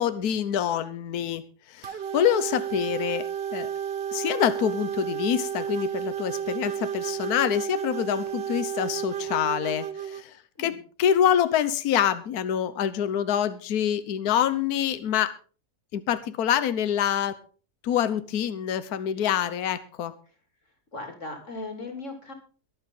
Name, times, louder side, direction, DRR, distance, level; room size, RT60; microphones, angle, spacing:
voice 1, 0.0-1.4 1.7-3.7 4.1-10.3 10.6-10.7 11.0-15.3 15.9-17.4 17.8-20.1, left 9 dB, 70° left, 13 dB, 1.4 m, -26 dB
sound 1, 1.8-10.2, right 9 dB, 50° right, 0.8 m, -32 dB
voice 2, 20.9-22.3, left 2 dB, 50° left, 5 dB, 3.3 m, -37 dB
22.5 x 8.7 x 3.7 m, 0.38 s
omnidirectional pair, 1.7 m